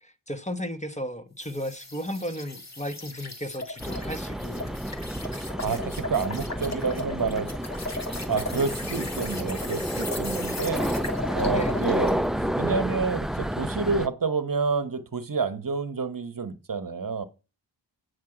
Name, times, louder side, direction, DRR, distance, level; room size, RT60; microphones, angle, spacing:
voice 1, 0.0-4.7 11.5-11.9, equal, 15° left, 1.1 m, -34 dB
sound 1, 1.4-12.2, left 2 dB, 35° left, 1.8 m, -37 dB
sound 2, 3.8-14.1, equal, ahead, 0.4 m, -30 dB
voice 2, 5.4-7.5 8.3-10.9 11.3-17.2, right 5 dB, 45° right, 1.0 m, -29 dB
9.2 x 6.5 x 4.9 m
wide cardioid pair, 65°, 45 cm